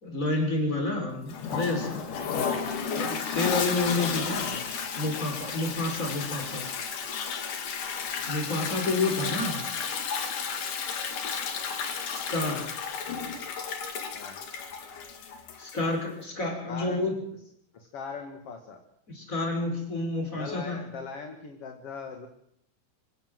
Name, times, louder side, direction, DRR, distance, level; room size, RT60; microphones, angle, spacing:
voice 1, 0.0-2.1 2.9-4.6 5.0-6.7 8.3-9.6 12.1-12.7 15.6-17.2 19.1-20.8, left 2 dB, 25° left, 3 dB, 5.8 m, -29 dB
Toilet flush, 1.3-15.9, left 6 dB, 85° left, 3.9 m, -33 dB
voice 2, 3.8-4.3 8.0-8.1 14.1-14.4 16.7-17.0 17.7-18.8 20.3-22.3, left 5 dB, 50° left, 5 dB, 2.7 m, -40 dB
26.0 x 16.0 x 7.8 m, 0.71 s
omnidirectional pair, 3.6 m